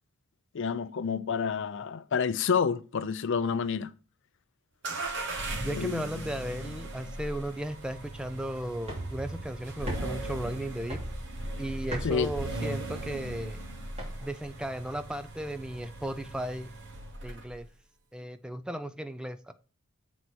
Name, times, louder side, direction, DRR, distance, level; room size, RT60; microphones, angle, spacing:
voice 1, 0.5-3.9 5.8-6.0 12.0-12.3, left 6 dB, 60° left, 0.5 m, -29 dB
sound 1, 4.8-17.7, right 1 dB, 60° right, 1.0 m, -38 dB
voice 2, 5.6-11.0 11.6-13.6 14.2-16.7 17.2-17.7 18.1-19.5, right 1 dB, 5° right, 0.5 m, -35 dB
sound 2, 8.8-14.5, right 1 dB, 30° right, 2.9 m, -41 dB
7.7 x 4.1 x 6.0 m
head